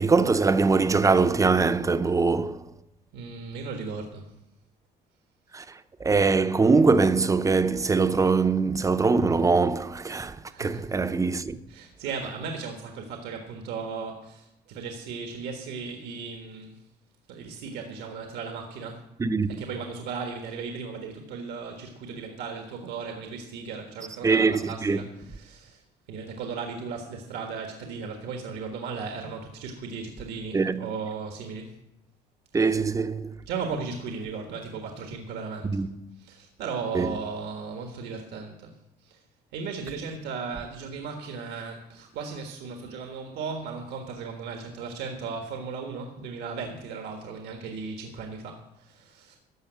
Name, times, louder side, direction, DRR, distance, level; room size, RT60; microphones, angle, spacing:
voice 1, 0.0-2.6 5.5-5.6 6.0-11.6 19.2-19.6 24.2-25.0 30.5-30.9 32.5-33.3 35.7-36.0 36.9-37.1, right 4 dB, 20° right, 0.6 m, -22 dB
voice 2, 3.1-4.3 10.5-10.9 11.7-16.8 17.3-19.0 19.6-25.8 26.1-31.7 32.5-32.8 33.5-35.8 36.2-38.7 39.0-39.2 39.5-49.4, right 5 dB, 85° right, 1.5 m, -36 dB
14.0 x 5.5 x 8.0 m
cardioid pair, 110°, 17 cm